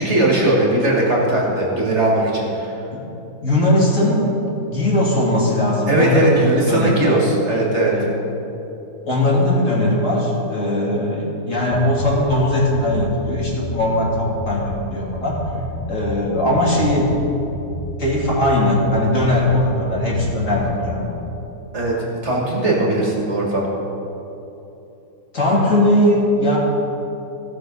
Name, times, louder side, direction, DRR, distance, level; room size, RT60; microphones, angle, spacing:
voice 1, 0.0-2.7 5.9-7.9 21.7-23.7, right 1 dB, 45° right, -3 dB, 2.0 m, -19 dB
voice 2, 3.4-4.4 4.7-6.3 6.7-7.2 7.9-8.1 9.1-15.4 15.9-17.2 18.0-21.1 25.3-26.6, left 1 dB, 50° left, -4 dB, 2.4 m, -19 dB
sound 1, 11.7-21.3, left 1 dB, 5° right, 1.4 m, -31 dB
16.0 x 6.2 x 5.3 m, 2.9 s
omnidirectional pair, 1.7 m